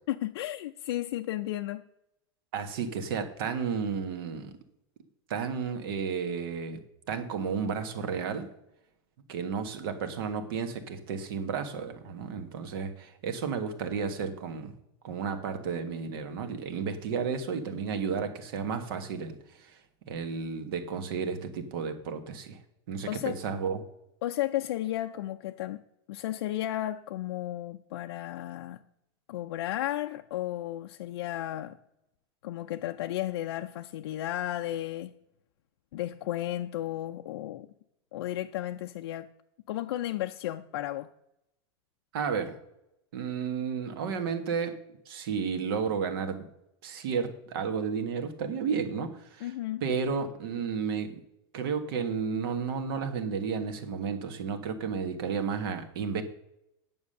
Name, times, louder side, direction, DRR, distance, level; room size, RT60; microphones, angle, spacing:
voice 1, 0.1-1.8 23.1-23.4 24.2-25.8 26.1-28.8 29.3-31.8 32.4-35.2 35.9-37.7 38.1-39.3 39.7-41.1 49.4-49.8, left 14 dB, 80° left, 0.5 m, -33 dB
voice 2, 2.5-4.5 5.3-6.8 7.1-8.5 9.3-14.8 15.0-19.8 20.1-22.6 22.9-23.8 42.1-42.6 43.1-44.7 45.0-46.5 46.8-49.5 49.8-51.2 51.5-56.2, right 6 dB, 60° right, 1.6 m, -32 dB
9.6 x 7.1 x 6.6 m
supercardioid pair, 175°, 13 cm